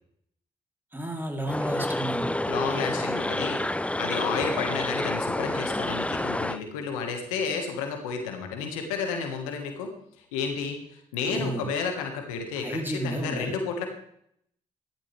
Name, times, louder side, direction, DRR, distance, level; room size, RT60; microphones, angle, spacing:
voice 1, 0.9-3.3 11.2-11.7 12.6-13.6, right 1 dB, 10° right, 2 dB, 3.4 m, -33 dB
sound 1, 1.5-6.6, left 1 dB, 5° left, 0.6 m, -29 dB
voice 2, 2.5-9.9 10.3-13.9, left 5 dB, 90° left, 4 dB, 1.7 m, -31 dB
15.0 x 12.5 x 3.4 m, 0.70 s
hypercardioid pair, 45°, 18 cm